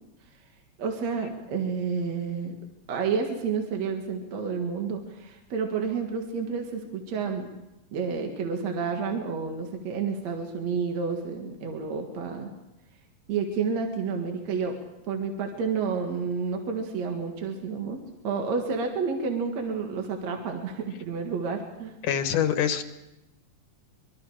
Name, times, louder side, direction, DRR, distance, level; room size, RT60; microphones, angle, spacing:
voice 1, 0.8-2.5 2.9-7.5 7.9-12.5 13.3-14.8 15.0-18.0 18.2-21.9, right 5 dB, 60° right, 2 dB, 2.9 m, -30 dB
voice 2, 22.0-22.8, left 9 dB, 75° left, 8 dB, 2.7 m, -24 dB
24.5 x 23.5 x 5.0 m, 0.92 s
omnidirectional pair, 3.7 m